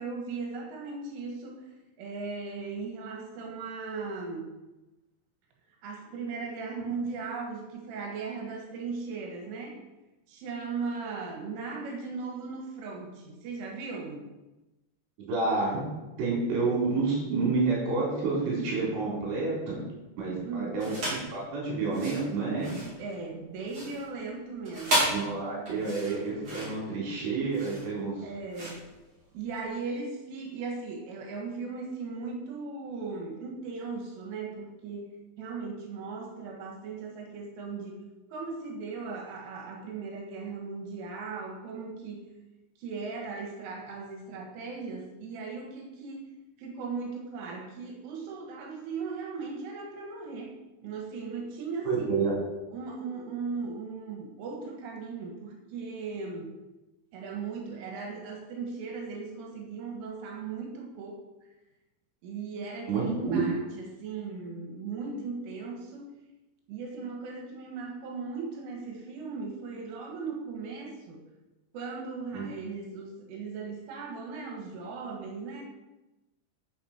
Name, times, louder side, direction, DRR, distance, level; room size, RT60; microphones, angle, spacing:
voice 1, 0.0-1.7 2.0-4.6 5.8-9.8 10.3-14.3 20.4-20.8 23.0-25.2 28.2-28.9 29.3-38.1 38.3-42.3 42.8-46.2 46.6-52.1 52.7-56.6 57.1-61.2 62.2-66.2 66.7-71.2 71.7-75.6, right 4 dB, 80° right, 1 dB, 4.0 m, -38 dB
voice 2, 15.3-15.8 16.2-19.8 20.2-21.0 21.2-22.8 25.1-28.3 51.8-52.3 62.9-63.4 72.3-72.4, right 4 dB, 60° right, -5 dB, 5.6 m, -29 dB
sound 1, 20.8-21.3 21.8-29.7, right 1 dB, 35° right, 4.3 m, -34 dB
13.0 x 7.2 x 4.4 m, 1.0 s
omnidirectional pair, 5.6 m